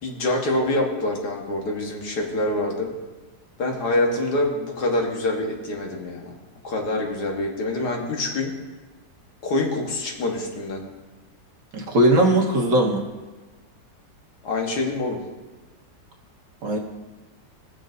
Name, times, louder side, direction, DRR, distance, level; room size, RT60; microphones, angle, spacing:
voice 1, 0.0-2.9 3.6-6.3 6.6-8.5 9.4-10.8 14.4-15.2, left 2 dB, 65° left, 0 dB, 1.9 m, -25 dB
voice 2, 11.7-13.0 16.6-16.8, right 1 dB, 70° right, 0 dB, 1.9 m, -19 dB
20.0 x 6.8 x 2.6 m, 1.2 s
omnidirectional pair, 2.0 m